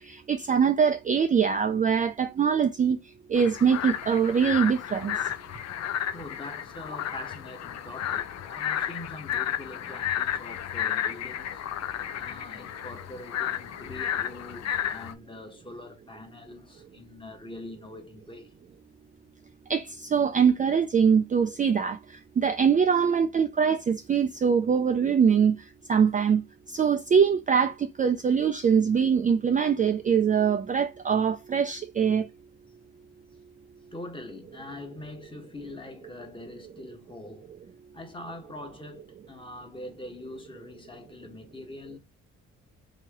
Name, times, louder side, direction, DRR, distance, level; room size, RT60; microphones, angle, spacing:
voice 1, 0.0-3.0 3.3-5.2 19.7-22.0 22.4-25.6 25.9-26.4 26.7-32.3, right 7 dB, 25° right, 0.3 m, -23 dB
sound 1, 3.4-15.1, left 10 dB, 60° left, 0.5 m, -32 dB
voice 2, 6.1-11.6 12.1-18.5 33.9-37.5 37.9-42.0, left 2 dB, 15° left, 1.1 m, -43 dB
3.1 x 2.8 x 3.4 m
cardioid pair, 90°, 30 cm